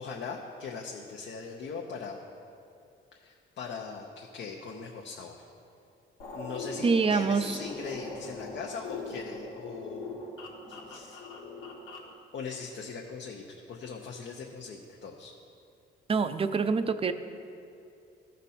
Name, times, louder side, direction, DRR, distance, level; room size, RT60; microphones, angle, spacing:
voice 1, 0.0-2.2 3.1-5.4 6.3-10.2 10.7-11.2 12.3-15.3, left 5 dB, 65° left, 0 dB, 0.8 m, -40 dB
sound 1, 6.2-12.1, left 2 dB, 90° left, 1.4 m, -41 dB
voice 2, 6.8-7.6 16.1-17.1, right 5 dB, 30° right, 11 dB, 0.5 m, -25 dB
14.5 x 5.3 x 4.2 m, 2.5 s
cardioid pair, 90°, 20 cm